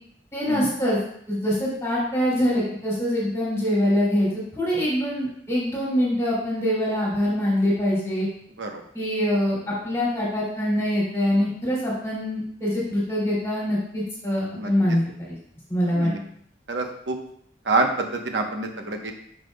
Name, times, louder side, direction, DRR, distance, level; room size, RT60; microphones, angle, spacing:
voice 1, 0.3-1.0 1.3-8.3 8.9-15.4 15.7-16.1, equal, 15° left, -6 dB, 2.7 m, -24 dB
voice 2, 16.7-17.2 17.7-19.1, right 3 dB, 85° right, 4 dB, 1.0 m, -26 dB
10.5 x 5.9 x 2.3 m, 0.65 s
head